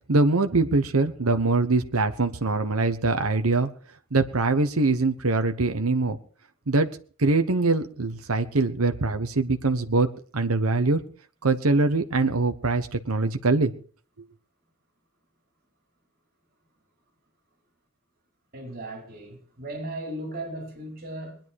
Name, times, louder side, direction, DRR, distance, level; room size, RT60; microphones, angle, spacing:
voice 1, 0.1-3.7 4.1-6.2 6.7-6.9 7.2-11.0 11.4-13.7, right 3 dB, 75° right, 1.1 m, -23 dB
voice 2, 18.5-21.4, right 1 dB, 45° right, 5.1 m, -36 dB
21.0 x 10.5 x 4.7 m
head